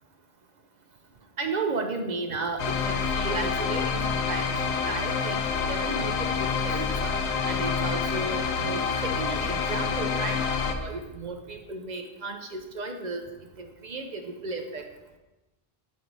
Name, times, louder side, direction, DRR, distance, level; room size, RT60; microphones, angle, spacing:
voice 1, 1.4-4.5 4.9-5.4 5.7-7.1 7.5-10.4 10.7-13.3 13.6-14.9, right 3 dB, 50° right, 5 dB, 0.6 m, -34 dB
sound 1, 2.6-10.7, left 5 dB, 90° left, 0.9 m, -27 dB
7.1 x 4.5 x 3.9 m, 1.1 s
omnidirectional pair, 1.0 m